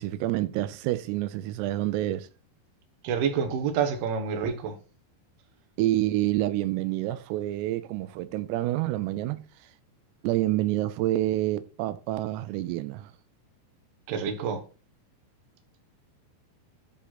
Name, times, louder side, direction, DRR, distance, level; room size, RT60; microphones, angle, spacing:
voice 1, 0.0-2.3 5.8-9.4 10.2-13.1, right 15 dB, 90° right, 2.4 m, -28 dB
voice 2, 3.0-4.8 14.1-14.6, right 6 dB, 65° right, 2.8 m, -28 dB
10.5 x 4.2 x 4.0 m
omnidirectional pair, 5.5 m